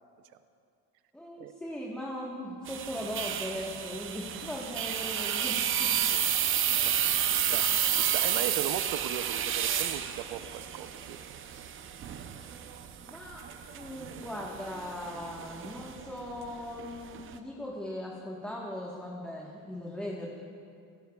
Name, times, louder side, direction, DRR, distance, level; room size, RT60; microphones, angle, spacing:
voice 1, 1.1-6.1 6.4-6.8 13.1-20.4, left 1 dB, 5° left, -4 dB, 1.3 m, -39 dB
sound 1, 2.7-17.4, right 9 dB, 30° right, 0.6 m, -31 dB
voice 2, 6.8-7.7 7.9-11.2, right 11 dB, 70° right, 10 dB, 0.7 m, -38 dB
27.5 x 12.0 x 2.3 m, 2.4 s
cardioid pair, 135°, 39 cm